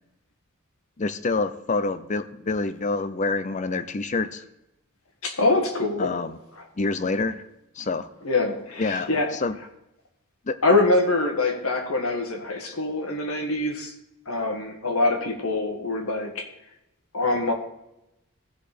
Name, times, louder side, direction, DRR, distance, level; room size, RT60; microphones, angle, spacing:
voice 1, 1.0-4.4 6.0-6.4 6.8-7.4 7.8-8.1 8.8-9.6 10.5-10.6, left 3 dB, 35° left, 12 dB, 0.5 m, -27 dB
voice 2, 5.2-6.1 8.2-9.3 10.6-13.9 14.3-16.5 17.1-17.5, left 2 dB, 75° left, 3 dB, 1.7 m, -24 dB
15.0 x 5.1 x 4.4 m, 0.87 s
head